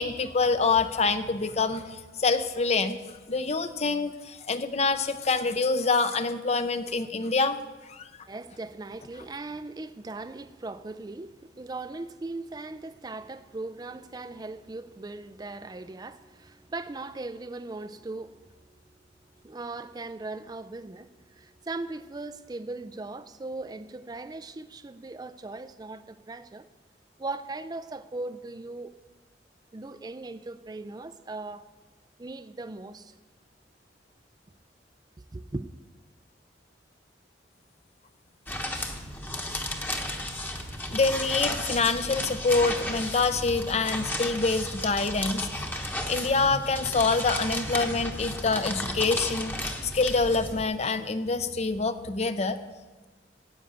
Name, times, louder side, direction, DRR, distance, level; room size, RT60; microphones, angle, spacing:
voice 1, 0.0-3.0 3.3-7.6 7.9-8.0 40.9-52.6, left 4 dB, 35° left, 0.6 m, -26 dB
voice 2, 8.3-19.0 19.4-26.7 27.2-28.9 29.7-31.6 32.2-33.2 35.3-35.7, right 2 dB, 20° right, 0.4 m, -39 dB
sound 1, 38.5-50.6, left 1 dB, 10° left, 1.0 m, -33 dB
10.5 x 8.0 x 8.9 m
head